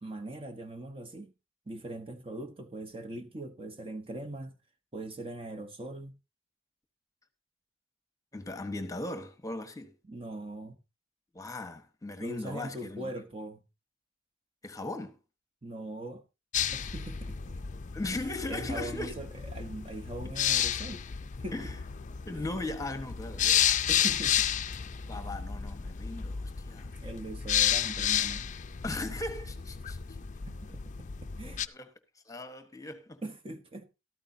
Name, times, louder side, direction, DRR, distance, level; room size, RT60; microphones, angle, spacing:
voice 1, 0.0-1.3 1.7-4.6 4.9-6.1 10.0-10.8 12.2-13.6 15.6-16.2 16.7-17.6 18.1-18.2 18.5-21.0 21.4-21.7 22.3-22.4 23.9-24.5 25.1-25.5 26.8-28.5 30.5-31.1 31.4-31.7 33.2-33.9, right 1 dB, 30° right, 1.1 m, -41 dB
voice 2, 8.3-9.9 11.3-13.1 14.6-15.1 17.9-19.1 21.5-21.7 22.2-23.7 25.1-26.9 28.8-30.0 31.4-31.9 32.3-33.2, left 2 dB, 15° left, 1.2 m, -38 dB
sound 1, 16.5-31.7, left 9 dB, 40° left, 0.5 m, -32 dB
13.5 x 13.5 x 2.7 m
head